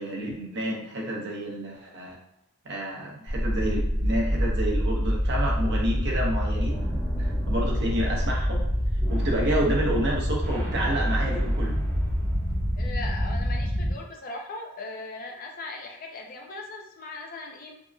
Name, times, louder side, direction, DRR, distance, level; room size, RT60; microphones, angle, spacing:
voice 1, 0.0-2.2 2.6-6.8 7.2-8.6 9.1-11.8, right 1 dB, 50° right, -2 dB, 0.7 m, -29 dB
sound 1, 3.3-13.9, equal, 5° left, 0.7 m, -26 dB
voice 2, 12.8-17.7, left 3 dB, 40° left, 2 dB, 0.4 m, -39 dB
3.5 x 2.0 x 2.6 m, 0.78 s
head